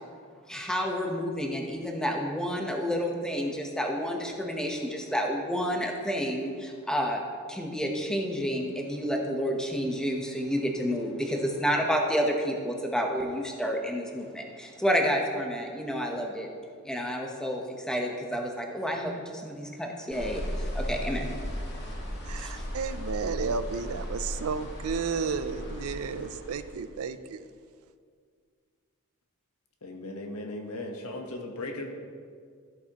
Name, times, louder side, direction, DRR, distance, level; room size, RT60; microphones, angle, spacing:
voice 1, 0.5-7.2 7.5-16.5 16.8-21.3 22.4-22.6, equal, 5° left, 1 dB, 0.9 m, -30 dB
sound 1, 20.1-26.9, equal, 50° left, 1.7 m, -36 dB
voice 2, 22.2-27.4, right 5 dB, 70° right, 12 dB, 0.4 m, -32 dB
voice 3, 29.8-31.9, left 2 dB, 80° left, 3 dB, 1.2 m, -37 dB
13.5 x 8.2 x 3.0 m, 2.1 s
head